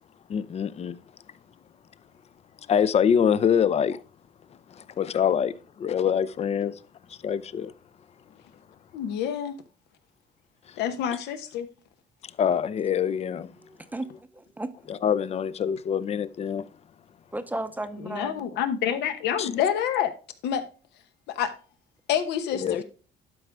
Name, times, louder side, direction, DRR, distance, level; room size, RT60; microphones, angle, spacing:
voice 1, 0.3-1.0 2.7-4.0 4.7-6.8 7.1-7.7 10.7-10.8 12.2-13.5 14.9-16.7 19.4-19.5 22.5-22.8, left 8 dB, 40° left, 0.5 m, -25 dB
voice 2, 8.9-9.6 10.8-11.7 18.0-20.1 20.4-20.6 21.3-21.5 22.1-22.8, left 9 dB, 80° left, 1.1 m, -27 dB
voice 3, 13.6-14.1 14.3-14.7 17.3-18.5 22.6-22.8, right 2 dB, 10° right, 0.6 m, -34 dB
11.5 x 4.9 x 3.5 m
cardioid pair, 110°, 17 cm